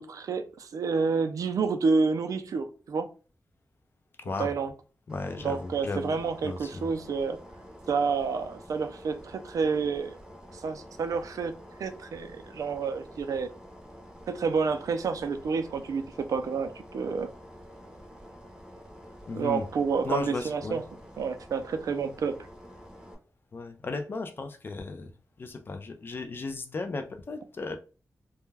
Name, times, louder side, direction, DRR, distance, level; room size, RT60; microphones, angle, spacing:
voice 1, 0.0-3.1 4.4-4.7 5.4-7.4 7.9-10.2 10.5-11.5 11.8-13.5 14.3-17.3 19.3-20.8 21.2-22.4, right 5 dB, 70° right, 0.3 m, -29 dB
voice 2, 4.2-4.5 5.1-6.9 19.3-19.6 20.0-20.8 23.5-25.1 25.4-27.8, left 3 dB, 35° left, 0.3 m, -35 dB
sound 1, 5.1-23.1, equal, 10° right, 0.6 m, -48 dB
2.2 x 2.1 x 3.2 m
wide cardioid pair, 170°, 6 cm